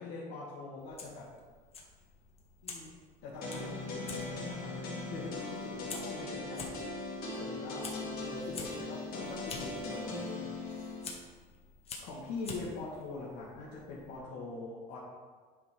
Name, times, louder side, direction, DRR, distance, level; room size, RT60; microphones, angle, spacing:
voice 1, 0.0-1.3 2.6-2.9 3.2-4.8 5.1-11.0 12.0-15.0, left 3 dB, 75° left, -7 dB, 1.7 m, -44 dB
Fire, 0.8-14.2, left 4 dB, 35° left, 1.2 m, -49 dB
sound 1, 3.4-11.0, left 2 dB, 60° left, 1.9 m, -39 dB
9.6 x 3.7 x 4.4 m, 1.5 s
cardioid pair, 140°, 18 cm